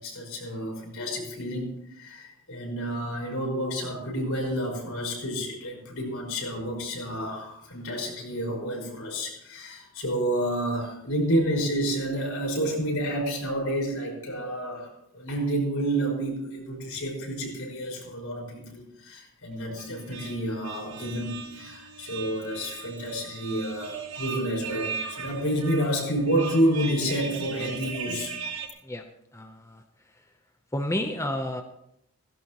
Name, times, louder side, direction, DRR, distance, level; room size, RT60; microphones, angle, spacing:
voice 1, 0.0-1.7 2.0-28.3, right 1 dB, 70° left, 0 dB, 5.5 m, -29 dB
sound 1, 19.8-28.7, right 5 dB, 70° right, 1.5 m, -38 dB
voice 2, 29.3-29.8 30.1-30.3 30.7-31.6, left 1 dB, 15° left, 5 dB, 0.8 m, -31 dB
17.0 x 16.5 x 3.0 m, 0.76 s
head